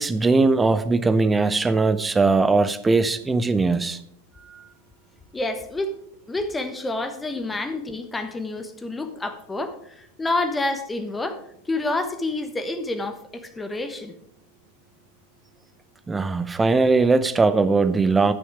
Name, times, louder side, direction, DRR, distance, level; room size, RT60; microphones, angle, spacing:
voice 1, 0.0-4.0 4.5-4.6 16.1-18.3, right 3 dB, 10° right, 12 dB, 0.6 m, -20 dB
voice 2, 5.3-6.0 6.3-14.1, left 2 dB, 10° left, 8 dB, 0.9 m, -28 dB
11.0 x 6.2 x 4.7 m, 0.71 s
figure-of-eight pair, 90°, 0 cm